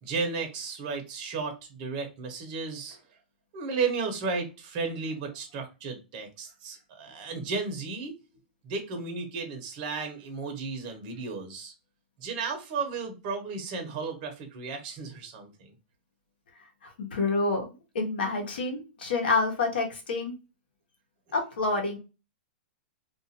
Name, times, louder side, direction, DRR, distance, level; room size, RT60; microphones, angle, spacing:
voice 1, 0.0-3.0 3.5-8.2 8.6-11.7 12.2-15.7, right 4 dB, 45° right, 3 dB, 0.9 m, -34 dB
voice 2, 16.8-17.7 17.9-20.3 21.3-22.0, left 3 dB, 75° left, 1 dB, 1.1 m, -28 dB
2.5 x 2.5 x 2.7 m, 0.29 s
hypercardioid pair, 125°, 6 cm